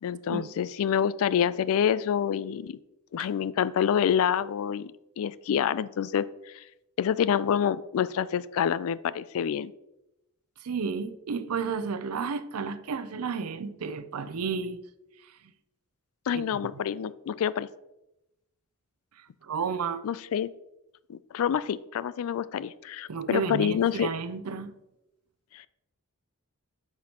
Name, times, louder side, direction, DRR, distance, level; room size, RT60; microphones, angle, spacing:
voice 1, 0.0-2.8 3.1-4.9 5.2-6.3 6.5-6.6 7.0-9.7 16.3-17.7 20.0-20.5 21.1-24.1 25.5-25.7, left 8 dB, 70° left, 18 dB, 0.3 m, -27 dB
voice 2, 10.6-14.8 15.2-15.3 16.3-16.4 19.2-20.0 23.1-24.7, right 5 dB, 80° right, 13 dB, 0.5 m, -32 dB
9.5 x 5.9 x 2.9 m, 0.91 s
head